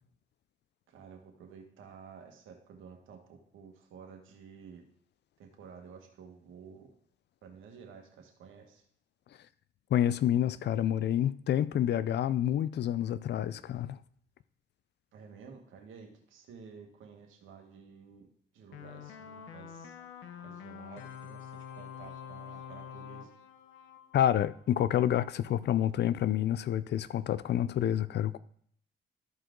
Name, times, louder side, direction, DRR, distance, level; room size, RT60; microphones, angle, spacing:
voice 1, 0.9-4.8 5.4-6.9 7.4-8.9 15.1-18.3 18.5-20.0 20.4-23.3, right 6 dB, 80° right, 1.8 m, -52 dB
voice 2, 9.9-14.0 24.1-28.4, left 11 dB, 60° left, 0.5 m, -28 dB
sound 1, 18.7-24.8, left 8 dB, 90° left, 0.9 m, -47 dB
13.5 x 4.7 x 3.9 m
cardioid pair, 90°, 20 cm